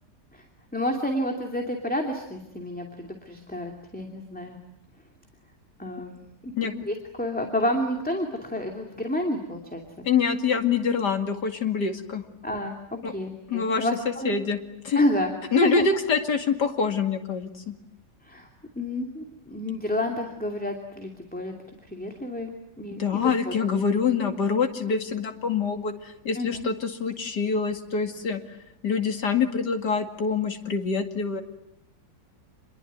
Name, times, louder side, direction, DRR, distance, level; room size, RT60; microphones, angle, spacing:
voice 1, 0.7-4.6 5.8-9.8 12.4-14.4 15.0-15.8 18.2-18.5 18.8-21.5 21.9-22.5 22.8-23.9 26.4-26.7, left 1 dB, 5° left, 3 dB, 2.6 m, -30 dB
voice 2, 10.0-12.2 13.0-13.1 13.5-13.9 14.2-14.6 14.8-15.0 15.5-17.7 23.0-28.4 28.8-31.4, left 5 dB, 90° left, 6 dB, 2.9 m, -25 dB
28.0 x 21.5 x 9.4 m, 0.84 s
omnidirectional pair, 1.7 m